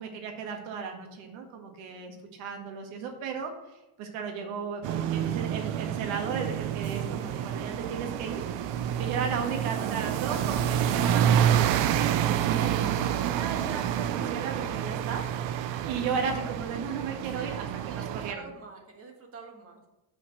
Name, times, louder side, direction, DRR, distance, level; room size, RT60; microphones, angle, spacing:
voice 1, 0.0-3.5 4.0-8.7 9.0-18.5, right 6 dB, 80° right, 3 dB, 1.8 m, -35 dB
sound 1, 4.8-18.3, right 10 dB, 65° right, 0.7 m, -28 dB
voice 2, 17.9-19.9, right 4 dB, 30° right, 2 dB, 1.6 m, -47 dB
7.8 x 4.8 x 7.2 m, 0.97 s
cardioid pair, 160°, 47 cm